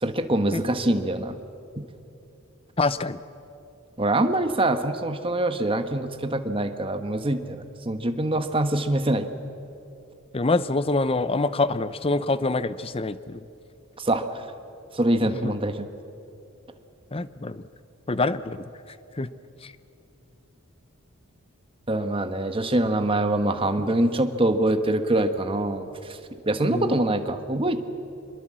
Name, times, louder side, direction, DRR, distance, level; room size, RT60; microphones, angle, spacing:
voice 1, 0.0-1.3 1.8-1.9 4.0-9.3 14.0-14.4 14.9-15.9 21.9-25.9 26.5-27.8, right 1 dB, 25° right, 8 dB, 1.2 m, -24 dB
voice 2, 2.8-3.2 10.3-13.4 15.4-15.5 17.1-17.6 18.1-18.6 19.2-19.3 19.6-19.7 26.7-27.0, left 3 dB, 25° left, 15 dB, 0.6 m, -25 dB
25.0 x 21.5 x 7.6 m, 2.7 s
head